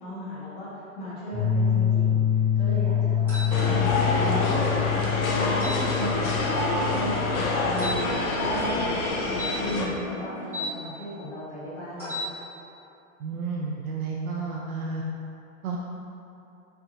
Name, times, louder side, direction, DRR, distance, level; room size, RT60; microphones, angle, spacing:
voice 1, 0.0-2.2 2.5-12.3, equal, 20° left, -13 dB, 0.5 m, -36 dB
sound 1, 1.3-8.0, left 8 dB, 20° right, 0.7 m, -26 dB
sound 2, 3.3-3.5 5.6-5.8 7.8-8.0 9.3-10.7 11.9-12.3, left 2 dB, 5° right, 1.1 m, -34 dB
sound 3, 3.5-9.9, left 2 dB, 80° left, 0.7 m, -26 dB
voice 2, 13.2-15.0 15.6-15.8, right 4 dB, 90° right, -2 dB, 0.5 m, -31 dB
4.3 x 2.7 x 2.5 m, 2.7 s
hypercardioid pair, 140°, 42 cm